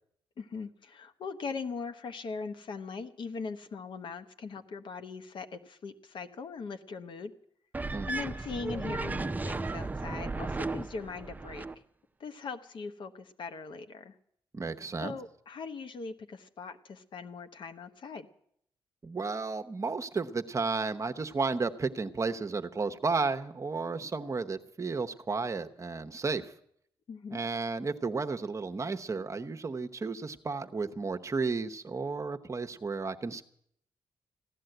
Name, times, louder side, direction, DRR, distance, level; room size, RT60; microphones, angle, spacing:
voice 1, 0.4-7.3 8.1-11.7 12.2-14.1 15.0-18.3 27.1-27.4, left 4 dB, 65° left, 9 dB, 1.0 m, -40 dB
sound 1, 7.7-11.8, right 3 dB, 20° right, 0.5 m, -35 dB
voice 2, 7.9-8.2 14.5-15.1 19.0-26.5 27.3-33.4, right 4 dB, 35° right, 7 dB, 0.9 m, -33 dB
15.5 x 11.5 x 7.9 m, 0.70 s
cardioid pair, 75°, 9 cm